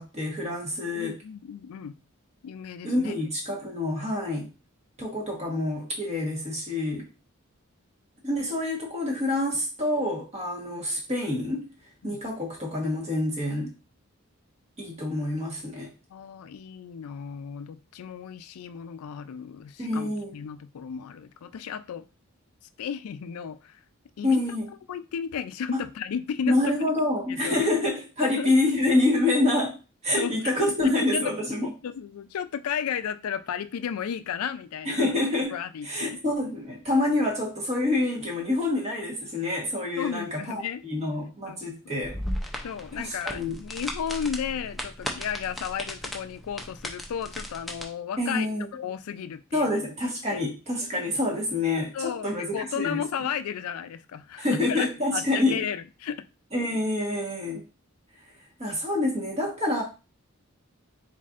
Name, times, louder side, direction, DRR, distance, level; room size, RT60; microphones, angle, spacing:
voice 1, 0.0-1.2 2.8-4.5 5.0-7.1 8.2-11.7 12.0-13.7 14.8-15.9 19.8-20.3 24.2-24.6 25.7-25.8 26.4-29.8 30.0-31.7 34.8-35.6 35.8-42.1 43.0-43.6 48.2-48.7 49.5-53.0 54.4-55.6 56.5-57.6 58.6-59.8, left 2 dB, 30° right, 1.2 m, -27 dB
voice 2, 1.0-2.0 2.4-3.1 12.0-12.2 16.1-22.0 22.8-23.8 24.2-24.4 24.9-26.7 27.3-27.6 28.2-28.5 30.2-30.6 31.1-31.4 31.8-35.1 35.5-36.2 40.0-40.8 41.5-41.6 42.6-48.5 48.7-49.8 50.3-50.5 51.9-54.9 55.1-56.3, left 7 dB, 90° left, 0.4 m, -34 dB
sound 1, 42.0-47.8, equal, ahead, 0.5 m, -36 dB
4.1 x 4.0 x 2.4 m
head